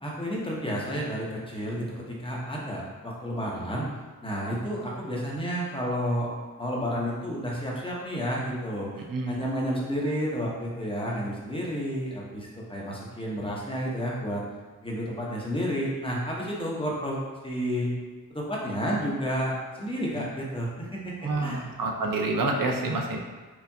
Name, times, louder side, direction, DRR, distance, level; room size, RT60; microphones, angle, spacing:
voice 1, 0.0-3.9 4.2-6.3 6.6-14.4 14.8-17.9 18.3-21.6, equal, 15° left, -4 dB, 0.9 m, -31 dB
voice 2, 9.1-9.4 20.1-20.3 21.2-23.2, right 2 dB, 70° right, 2 dB, 0.6 m, -28 dB
4.5 x 2.4 x 2.7 m, 1.3 s
cardioid pair, 60°, 34 cm